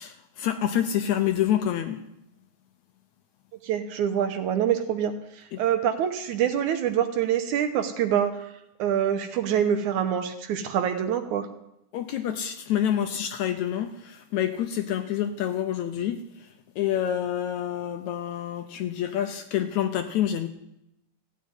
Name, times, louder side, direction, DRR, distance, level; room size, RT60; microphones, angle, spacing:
voice 1, 0.0-2.0 5.5-5.6 11.9-20.5, left 10 dB, 75° left, 8 dB, 1.9 m, -27 dB
voice 2, 3.6-8.5 8.8-11.5, right 9 dB, 70° right, 8 dB, 2.2 m, -25 dB
15.0 x 7.5 x 9.6 m, 0.85 s
omnidirectional pair, 3.9 m